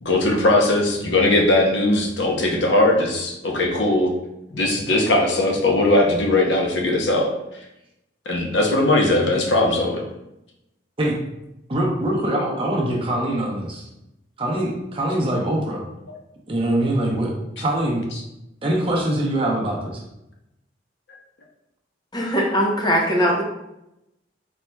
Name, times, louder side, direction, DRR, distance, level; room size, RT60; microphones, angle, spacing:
voice 1, 0.0-4.1 4.5-7.3 8.3-10.0, left 2 dB, 80° left, 1 dB, 0.8 m, -19 dB
voice 2, 11.7-13.9 14.4-15.8 16.5-18.0 18.6-20.0, right 1 dB, 30° right, -2 dB, 0.8 m, -23 dB
voice 3, 22.1-23.4, equal, 25° left, -1 dB, 0.8 m, -20 dB
4.3 x 4.2 x 2.3 m, 0.88 s
head